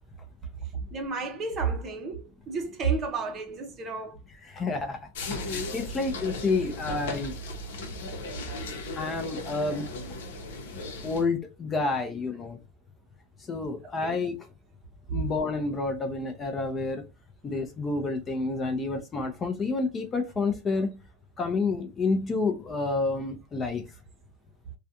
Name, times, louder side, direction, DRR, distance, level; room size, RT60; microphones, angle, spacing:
voice 1, 0.7-4.2 6.5-6.6 14.0-14.2, right 5 dB, 30° right, 0.7 m, -31 dB
voice 2, 4.4-7.3 8.9-9.9 11.0-12.6 13.5-14.3 15.1-17.0 17.4-21.0 21.4-23.8, left 3 dB, 20° left, 0.5 m, -29 dB
sound 1, 5.1-11.2, left 2 dB, 85° left, 0.8 m, -36 dB
2.4 x 2.2 x 2.7 m
supercardioid pair, 145°, 0 cm